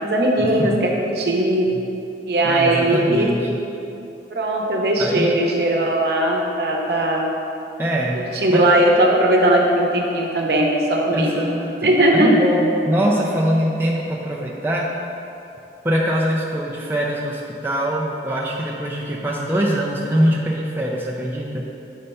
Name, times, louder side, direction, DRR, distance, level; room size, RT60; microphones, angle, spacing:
voice 1, 0.0-1.7 2.3-3.3 4.3-7.2 8.1-11.4 11.8-12.3, right 1 dB, 65° right, -1 dB, 0.8 m, -19 dB
voice 2, 2.4-3.6 5.0-5.4 7.8-8.7 11.1-14.9 15.8-21.6, equal, 10° right, -3 dB, 0.4 m, -23 dB
6.5 x 3.3 x 5.4 m, 2.8 s
head